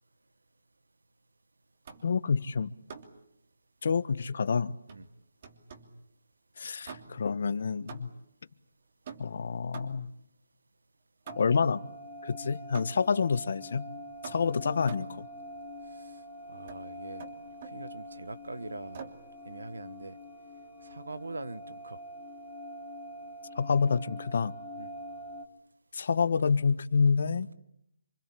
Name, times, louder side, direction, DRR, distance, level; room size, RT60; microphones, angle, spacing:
sound 1, 1.8-2.2 2.9-3.3 4.9-6.0 6.8-7.4 7.9-8.3 9.0-10.2 11.3-11.7 12.7-13.2 14.2-15.2 16.7-16.8 17.2-17.8 18.9-19.3, right 5 dB, 40° right, 2.9 m, -47 dB
voice 1, 2.0-2.7 3.8-4.8 6.6-8.1 9.2-10.1 11.4-11.8 12.2-13.9 14.2-15.3 23.6-24.5 25.9-27.5, left 5 dB, 55° left, 1.3 m, -28 dB
sound 2, 11.3-25.5, equal, 15° left, 2.9 m, -45 dB
voice 2, 15.9-17.3 17.6-19.1 19.4-20.2 20.8-22.0 24.8-24.9, right 3 dB, 85° right, 1.5 m, -43 dB
27.5 x 25.0 x 8.6 m
hypercardioid pair, 160°, 0 cm